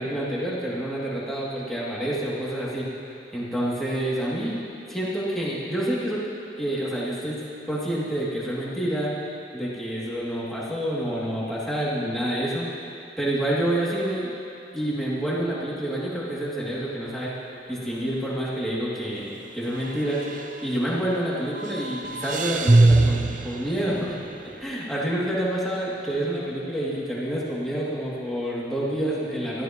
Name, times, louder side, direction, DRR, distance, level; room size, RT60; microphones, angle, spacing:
voice 1, 0.0-2.9 3.3-4.6 4.9-6.3 6.6-7.4 7.7-12.7 13.2-14.3 14.7-17.3 17.7-20.3 20.6-24.2 24.6-29.6, right 1 dB, ahead, -8 dB, 2.7 m, -28 dB
sound 1, 17.1-17.5 17.8-17.9 19.7-21.2 21.5-24.5, right 2 dB, 45° right, 0.7 m, -23 dB
19.0 x 14.5 x 3.1 m, 2.6 s
head